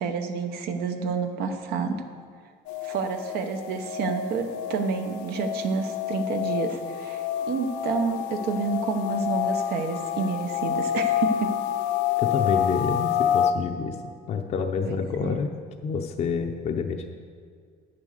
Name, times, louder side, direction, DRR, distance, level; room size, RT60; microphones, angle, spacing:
voice 1, 0.0-2.0 2.8-11.5 14.9-15.4, right 5 dB, 60° right, 6 dB, 0.9 m, -29 dB
sound 1, 2.7-13.5, left 10 dB, 80° left, 0.7 m, -28 dB
voice 2, 12.2-14.0 14.3-15.5 15.8-17.1, left 5 dB, 40° left, 3 dB, 0.6 m, -28 dB
9.3 x 7.2 x 6.5 m, 2.1 s
cardioid pair, 150°, 18 cm